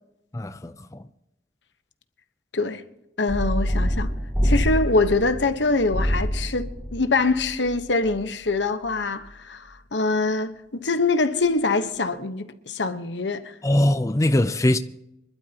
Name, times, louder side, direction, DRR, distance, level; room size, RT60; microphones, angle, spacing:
voice 1, 0.3-1.0 13.6-14.8, left 1 dB, 15° left, 0.5 m, -21 dB
voice 2, 3.2-4.1 4.4-13.5, left 3 dB, 85° left, 1.2 m, -24 dB
sound 1, 3.3-8.1, equal, 10° right, 4.9 m, -26 dB
25.5 x 12.5 x 2.9 m
head